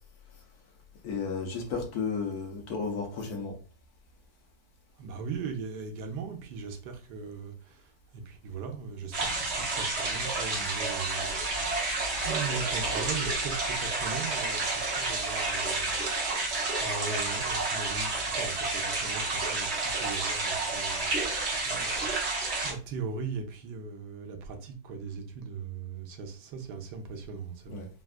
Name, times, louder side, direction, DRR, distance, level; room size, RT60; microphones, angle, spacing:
voice 1, 1.0-3.5 27.7-27.9, left 5 dB, 70° left, 1.2 m, -33 dB
voice 2, 5.0-27.8, right 5 dB, 85° right, 1.2 m, -39 dB
sound 1, 9.1-22.7, right 3 dB, 50° right, 0.9 m, -30 dB
3.5 x 2.3 x 2.4 m
omnidirectional pair, 1.8 m